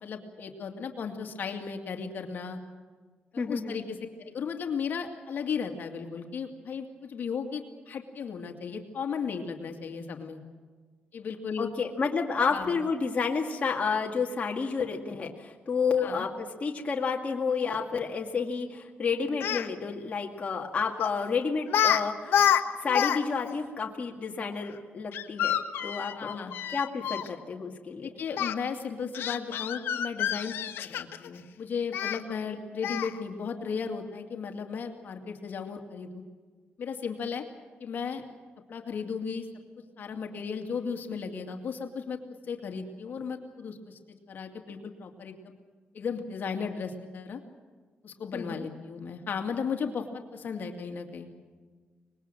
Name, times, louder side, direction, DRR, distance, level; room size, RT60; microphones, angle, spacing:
voice 1, 0.0-2.6 3.3-10.4 11.1-11.7 12.5-12.8 16.0-16.3 26.2-26.5 28.0-30.6 30.9-36.2 36.8-37.4 37.8-38.2 38.7-39.5 40.0-42.2 42.5-44.0 44.3-45.5 45.9-47.4 48.0-51.3, left 6 dB, 60° left, 4 dB, 2.3 m, -35 dB
voice 2, 3.4-3.8 11.6-22.4 22.8-25.6 25.8-26.4 26.7-28.1 32.5-32.6 48.3-48.7, left 5 dB, 40° left, 0 dB, 2.1 m, -30 dB
Speech, 19.3-19.7 21.0-21.2 21.7-22.0 22.3-23.2 23.5-23.6 25.1-27.3 28.3-28.5 29.1-31.3 31.9-32.2 32.8-33.2, left 9 dB, 85° left, 1.2 m, -27 dB
24.5 x 21.0 x 7.6 m, 1.5 s
cardioid pair, 115°, 4 cm